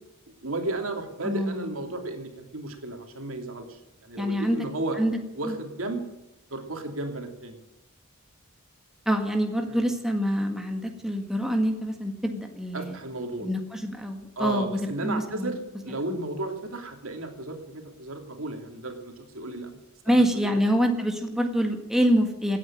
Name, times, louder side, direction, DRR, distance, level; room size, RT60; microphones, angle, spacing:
voice 1, 0.4-5.0 5.4-6.0 6.5-7.6 9.7-9.8 12.7-13.5 14.4-19.8 20.1-20.2, right 2 dB, 70° right, 4 dB, 2.9 m, -34 dB
voice 2, 1.2-1.7 4.2-4.6 4.9-5.6 9.1-13.0 13.4-15.5 20.1-22.6, equal, ahead, 3 dB, 1.7 m, -26 dB
17.5 x 9.2 x 8.7 m, 0.94 s
head